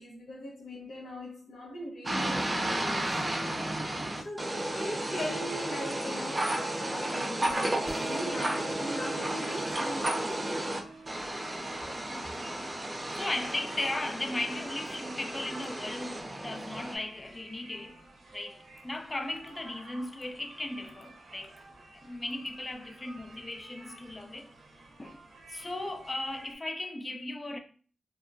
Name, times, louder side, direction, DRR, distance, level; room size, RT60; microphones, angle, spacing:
voice 1, 0.0-3.2 3.5-4.0 4.2-10.8, left 1 dB, 80° left, 0.7 m, -40 dB
sound 1, 2.1-10.8 11.1-17.0, right 1 dB, 30° right, 0.6 m, -33 dB
sound 2, 7.5-12.8, right 2 dB, 5° right, 0.8 m, -44 dB
sound 3, 10.7-26.5, right 2 dB, 80° right, 0.6 m, -53 dB
voice 2, 13.1-18.0 18.3-21.5 21.9-24.5 25.0-25.2 25.5-27.6, left 2 dB, 30° left, 0.4 m, -37 dB
2.8 x 2.2 x 2.5 m
cardioid pair, 65°, 0 cm